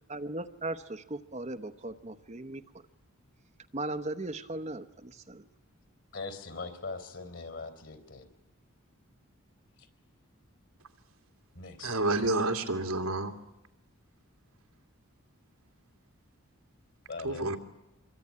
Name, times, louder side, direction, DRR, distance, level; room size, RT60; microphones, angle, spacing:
voice 1, 0.1-2.6 3.7-5.5, right 2 dB, 30° right, 9 dB, 1.0 m, -37 dB
voice 2, 6.1-8.3 11.5-11.9 17.1-17.5, left 3 dB, 55° left, 8 dB, 3.9 m, -41 dB
voice 3, 11.8-13.3 17.2-17.6, right 2 dB, 85° right, 4 dB, 2.6 m, -29 dB
25.0 x 24.0 x 9.7 m, 0.90 s
head